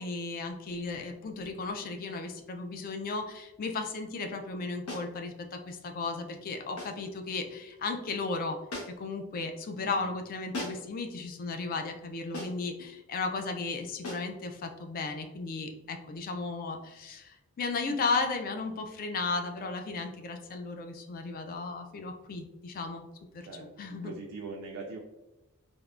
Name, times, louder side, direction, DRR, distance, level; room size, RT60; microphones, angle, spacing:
voice 1, 0.0-8.6 9.0-23.0 23.3-23.5 23.8-24.1, left 3 dB, 40° left, 5 dB, 0.3 m, -35 dB
sound 1, 4.9-5.2 6.8-7.1 8.7-9.1 10.5-11.0 12.3-12.7 14.0-14.3, left 2 dB, 75° left, 0.7 m, -39 dB
voice 2, 9.8-10.2 23.4-25.0, right 3 dB, 70° right, 0 dB, 0.4 m, -42 dB
3.4 x 2.1 x 2.4 m, 0.97 s
head